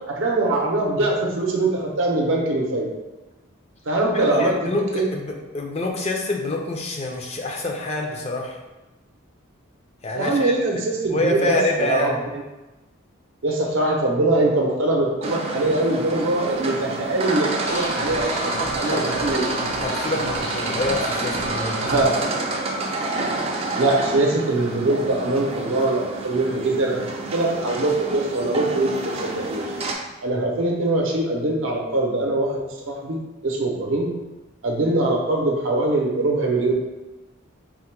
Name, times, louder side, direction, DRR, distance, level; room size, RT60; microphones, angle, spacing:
voice 1, 0.1-2.9 3.9-5.1 10.1-12.4 13.4-19.4 21.8-22.1 23.8-29.6 30.2-32.6 32.9-34.1 34.6-36.7, right 2 dB, 70° right, 0 dB, 0.6 m, -22 dB
voice 2, 4.1-8.6 10.0-10.8 11.1-12.2 18.9-19.1 19.8-21.8 30.3-30.4, left 2 dB, 30° left, 1 dB, 0.4 m, -27 dB
sound 1, 15.2-29.9, right 2 dB, 30° right, 0.4 m, -28 dB
sound 2, 17.7-22.0, left 1 dB, 65° left, 0.8 m, -35 dB
3.7 x 2.1 x 4.4 m, 1.1 s
head